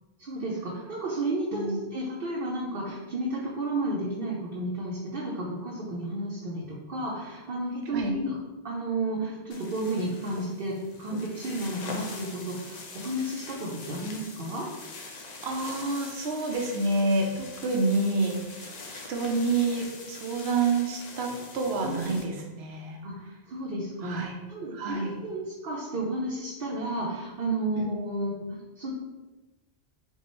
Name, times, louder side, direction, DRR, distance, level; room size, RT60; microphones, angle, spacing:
voice 1, 0.2-8.4 8.6-14.6 23.0-24.2 24.5-28.9, right 1 dB, 60° right, -5 dB, 0.9 m, -32 dB
sound 1, 9.5-22.2, left 3 dB, 50° left, 0.6 m, -42 dB
voice 2, 15.4-23.0 24.0-24.4 24.7-25.2 27.8-27.9, right 3 dB, 85° right, 2 dB, 0.9 m, -28 dB
5.3 x 2.4 x 3.1 m, 1.2 s
omnidirectional pair, 1.1 m